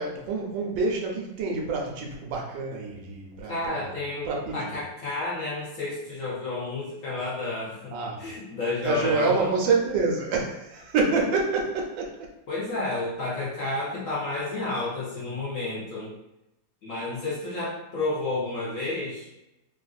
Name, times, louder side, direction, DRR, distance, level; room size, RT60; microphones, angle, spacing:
voice 1, 0.0-3.9 4.3-4.7 7.9-8.2 8.8-12.3, right 4 dB, 75° right, -1 dB, 1.4 m, -27 dB
voice 2, 3.5-9.5 12.5-16.1 16.8-19.3, left 2 dB, 60° left, -7 dB, 0.8 m, -31 dB
3.7 x 2.5 x 2.3 m, 0.92 s
omnidirectional pair, 2.1 m